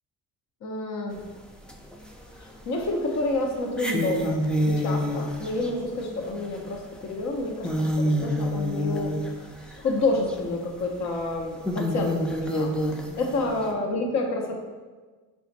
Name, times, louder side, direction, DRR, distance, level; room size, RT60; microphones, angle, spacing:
voice 1, 0.6-1.2 2.4-4.4 4.7-9.1 9.8-12.7 13.2-14.5, left 2 dB, 50° left, 1 dB, 0.8 m, -28 dB
sound 1, 1.1-1.2 1.7-2.4 2.8-2.9 3.7-10.0 10.3-10.4 11.0-11.1 11.6-13.7, equal, 5° left, 0.4 m, -28 dB
4.9 x 2.4 x 3.9 m, 1.4 s
cardioid pair, 95°, 34 cm